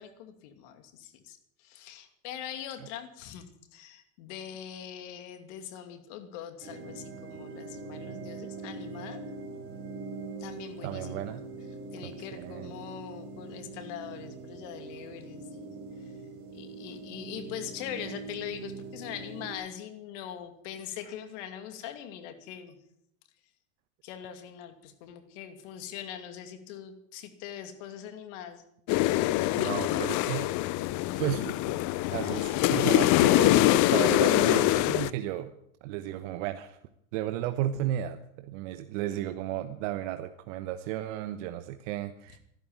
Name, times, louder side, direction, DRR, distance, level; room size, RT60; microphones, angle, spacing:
voice 1, 0.0-9.2 10.4-11.4 11.9-16.2 16.5-22.8 24.0-28.6, left 9 dB, 65° left, 8 dB, 2.7 m, -42 dB
sound 1, 6.6-19.5, right 3 dB, 35° right, 5.0 m, -42 dB
voice 2, 10.8-11.4 12.0-12.7 29.6-30.6 31.2-31.8 32.1-35.5 35.8-36.8 37.1-42.4, right 12 dB, 65° right, 9 dB, 1.1 m, -34 dB
sound 2, 28.9-35.1, left 17 dB, 50° left, 0.7 m, -24 dB
14.0 x 12.0 x 8.8 m, 0.72 s
supercardioid pair, 110°, 39 cm